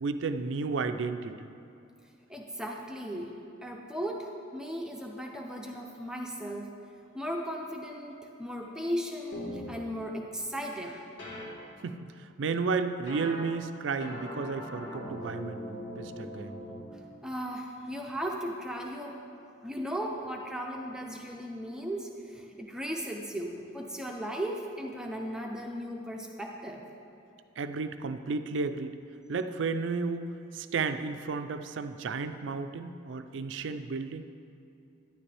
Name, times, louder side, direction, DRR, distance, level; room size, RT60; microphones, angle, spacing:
voice 1, 0.0-1.4 11.8-12.0 12.4-16.5 27.6-28.9 29.3-34.2, right 4 dB, 70° right, 9 dB, 0.4 m, -33 dB
voice 2, 2.3-3.3 3.6-6.7 7.1-11.1 16.9-19.2 19.6-26.8, equal, 5° right, 0 dB, 0.6 m, -36 dB
sound 1, 9.3-9.7 11.2-11.4 13.1-13.4 14.0-16.8, left 1 dB, 75° left, 1.5 m, -40 dB
10.0 x 10.0 x 3.4 m, 2.6 s
head